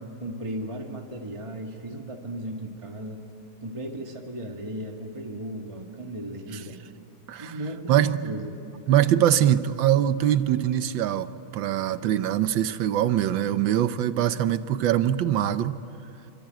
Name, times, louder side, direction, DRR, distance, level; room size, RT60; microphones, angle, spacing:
voice 1, 0.2-3.2 3.6-6.8 7.4-8.5, right 1 dB, 15° right, 2 dB, 1.6 m, -36 dB
voice 2, 7.9-8.2 8.9-15.8, right 11 dB, 70° right, 12 dB, 1.4 m, -23 dB
26.5 x 24.5 x 9.1 m, 2.8 s
omnidirectional pair, 2.3 m